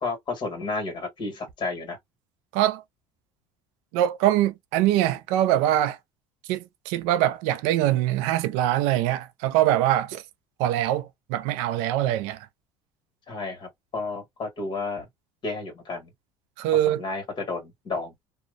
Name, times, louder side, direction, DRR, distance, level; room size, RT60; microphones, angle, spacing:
voice 1, 0.0-2.0 13.3-15.0 15.4-16.1 16.9-18.1, left 3 dB, 40° left, 1.4 m, -32 dB
voice 2, 3.9-6.0 6.5-10.2 10.6-12.5 16.6-17.0, right 13 dB, 75° right, 0.4 m, -23 dB
2.5 x 2.1 x 2.5 m
supercardioid pair, 95°, 12 cm